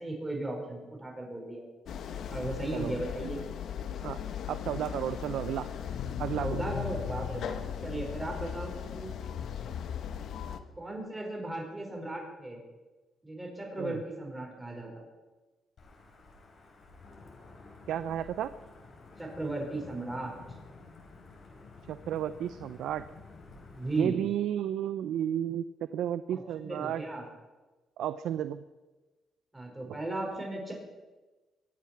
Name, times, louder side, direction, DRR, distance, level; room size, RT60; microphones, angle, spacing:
voice 1, 0.0-1.6 2.3-3.4 6.4-7.6 7.8-9.1 10.8-12.6 13.2-15.0 19.2-20.3 23.7-24.3 26.3-27.3 29.5-30.7, right 2 dB, 15° right, 0 dB, 5.2 m, -36 dB
sound 1, 1.9-10.6, left 8 dB, 70° left, 1.1 m, -37 dB
voice 2, 4.5-5.7 6.2-6.6 13.8-14.0 17.9-18.5 21.9-23.0 24.0-25.6 25.9-27.0 28.0-28.6, right 10 dB, 80° right, 13 dB, 0.5 m, -32 dB
Wind / Thunder / Rain, 15.8-24.0, left 3 dB, 55° left, 4.3 m, -51 dB
23.5 x 8.5 x 6.1 m, 1.2 s
cardioid pair, 90°, 0 cm